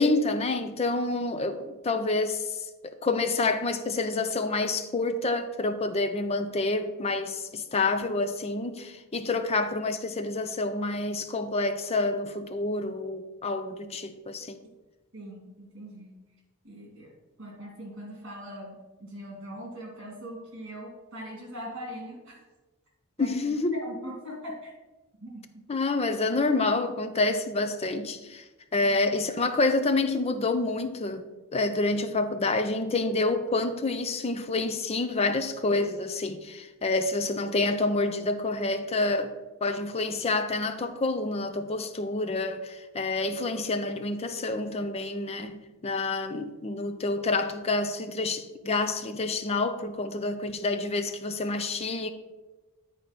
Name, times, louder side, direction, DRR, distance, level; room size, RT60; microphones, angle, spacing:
voice 1, 0.0-2.7 3.0-14.6 23.2-23.8 25.7-28.4 28.7-31.3 31.5-39.3 39.6-52.1, left 3 dB, 30° left, 0.5 m, -28 dB
voice 2, 15.1-16.2 16.6-17.1 17.4-22.4 23.2-24.7 25.2-25.6 28.8-29.0, equal, 55° right, 2.7 m, -41 dB
8.8 x 4.4 x 5.3 m
head